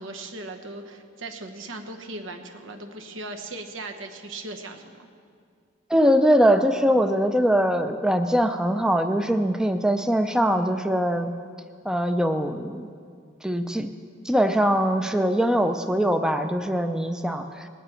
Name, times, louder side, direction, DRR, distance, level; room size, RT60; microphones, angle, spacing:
voice 1, 0.0-5.1, right 2 dB, 80° right, 5 dB, 1.1 m, -38 dB
voice 2, 5.9-11.3 11.8-12.9 13.4-13.9 14.2-17.7, equal, 5° right, 7 dB, 0.4 m, -22 dB
20.0 x 9.4 x 4.4 m, 2.2 s
head